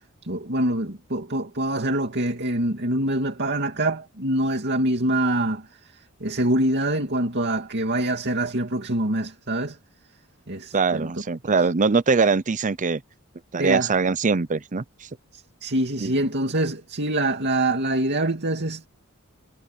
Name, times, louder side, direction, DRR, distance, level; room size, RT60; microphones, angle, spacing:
voice 1, 0.2-5.7 6.2-9.8 10.5-11.1 13.6-14.0 15.3-18.9, right 1 dB, 50° right, 2.5 m, -25 dB
voice 2, 10.7-13.0 13.5-14.8 16.0-16.1, right 4 dB, 35° right, 0.6 m, -22 dB
head